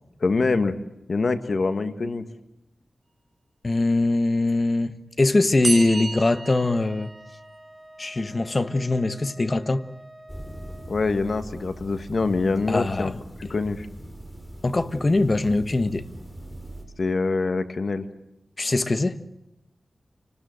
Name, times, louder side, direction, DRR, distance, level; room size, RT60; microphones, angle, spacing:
voice 1, 0.2-0.8 1.1-2.2 10.9-13.1 13.4-13.9 17.0-18.1, left 3 dB, 65° left, 1.8 m, -24 dB
voice 2, 3.6-7.1 8.0-9.9 12.7-13.2 14.6-16.0 18.6-19.2, left 2 dB, 40° left, 1.3 m, -22 dB
sound 1, 5.6-7.6, right 3 dB, 50° right, 2.3 m, -31 dB
Wind instrument woodwind instrument, 6.1-11.0, right 1 dB, 10° right, 3.5 m, -48 dB
sound 2, 10.3-16.8, equal, 5° left, 6.5 m, -41 dB
28.0 x 19.5 x 7.9 m
wide cardioid pair, 80°, 0 cm